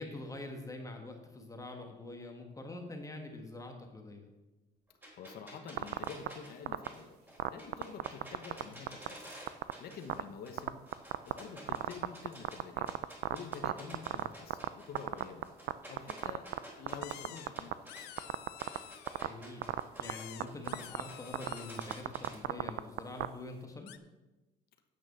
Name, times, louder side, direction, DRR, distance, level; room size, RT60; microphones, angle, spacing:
voice 1, 0.0-4.3 14.1-14.3 19.2-23.9, left 2 dB, 20° left, 3 dB, 1.5 m, -45 dB
sound 1, 5.0-10.2 10.4-12.6 12.9-18.2 18.6-22.4, equal, 10° right, 3.6 m, -50 dB
voice 2, 5.1-7.2 7.5-9.3 9.8-10.8 11.2-13.0 13.3-15.5 15.9-16.5 16.8-18.1, left 6 dB, 65° left, 6 dB, 1.1 m, -48 dB
sound 2, 5.8-6.3 6.7-6.9 7.4-8.6 8.9-9.1 9.5-9.7 10.1-10.2 10.6-11.3 11.7-14.7 14.9-15.7 16.0-16.6 16.9-17.7 18.2-18.8 19.1-19.3 19.6-20.1 20.4-20.5 20.7-21.0 21.3-21.5 21.8-23.3, right 16 dB, 75° right, 0.5 m, -32 dB
sound 3, 17.0-17.5 17.9-19.2 20.0-22.0 23.9-24.0, left 14 dB, 85° left, 0.6 m, -50 dB
8.9 x 6.3 x 6.7 m, 1.1 s
cardioid pair, 110°, 17 cm